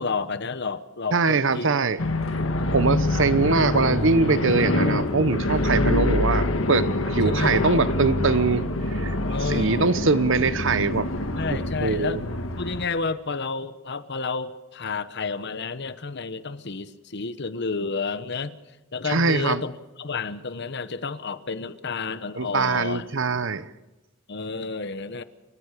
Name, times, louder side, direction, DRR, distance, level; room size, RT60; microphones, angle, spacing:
voice 1, 0.0-1.7 7.2-7.6 9.3-9.9 11.3-12.2 12.6-18.5 18.9-23.0 24.3-25.2, left 4 dB, 55° left, 1.1 m, -30 dB
voice 2, 1.1-2.0 2.7-9.2 9.5-11.1 11.8-12.2 19.0-19.6 22.4-23.7, right 4 dB, 65° right, 0.9 m, -23 dB
sound 1, 2.0-12.9, left 1 dB, 70° left, 1.9 m, -25 dB
29.0 x 15.0 x 6.8 m
head